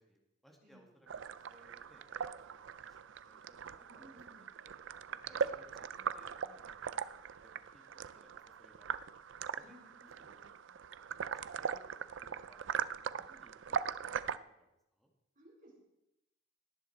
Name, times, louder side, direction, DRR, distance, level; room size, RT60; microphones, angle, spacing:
voice 1, 0.0-2.1 2.5-4.7 5.1-8.9 9.5-10.8 11.3-15.1, equal, ahead, 1 dB, 2.0 m, -65 dB
sound 1, 1.1-14.4, right 7 dB, 70° right, 0.4 m, -40 dB
voice 2, 3.9-4.5 9.6-10.3 15.4-15.8, equal, 45° right, -3 dB, 4.2 m, -60 dB
17.5 x 10.0 x 4.4 m, 0.90 s
head